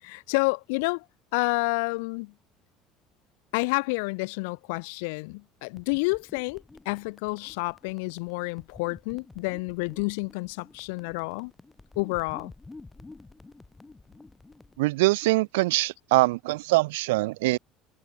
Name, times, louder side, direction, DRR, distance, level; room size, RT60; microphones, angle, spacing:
voice 1, 0.0-1.1 1.3-2.3 3.5-11.5 12.0-12.5, left 30 dB, 80° left, 0.6 m, -29 dB
sound 1, 5.7-14.8, left 3 dB, 15° left, 2.1 m, -50 dB
voice 2, 14.8-17.6, right 21 dB, 80° right, 0.4 m, -23 dB
hypercardioid pair, 70°, 0 cm